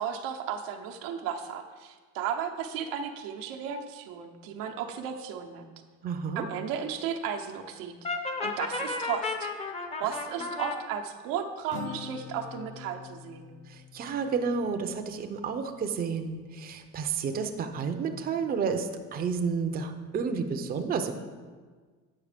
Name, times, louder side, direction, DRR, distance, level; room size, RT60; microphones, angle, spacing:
voice 1, 0.0-5.7 6.3-7.9 8.4-9.5 10.0-13.5, right 8 dB, 85° right, 4 dB, 0.9 m, -34 dB
voice 2, 6.0-6.5 13.7-21.1, right 5 dB, 25° right, 6 dB, 0.6 m, -31 dB
Brass instrument, 8.0-10.8, left 3 dB, 20° left, 0.7 m, -33 dB
Acoustic guitar, 11.7-15.4, left 8 dB, 60° left, 0.7 m, -44 dB
8.5 x 5.9 x 5.0 m, 1.5 s
cardioid pair, 150°, 34 cm